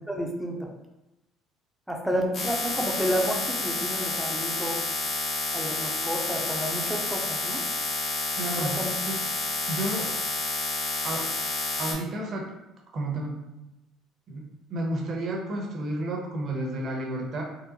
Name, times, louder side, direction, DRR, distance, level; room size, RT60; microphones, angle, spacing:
voice 1, 0.1-0.7 1.9-4.8 5.5-7.6 8.6-8.9, equal, 5° right, 0 dB, 0.6 m, -30 dB
sound 1, 2.3-11.9, left 3 dB, 60° left, 1.2 m, -30 dB
voice 2, 8.4-8.7 9.1-9.2 9.7-10.1 11.0-11.3 11.8-12.5 12.9-13.4 14.3-14.4 14.7-17.4, right 1 dB, 50° right, 0 dB, 0.8 m, -31 dB
3.7 x 2.0 x 2.9 m, 0.96 s
supercardioid pair, 85°, 0 cm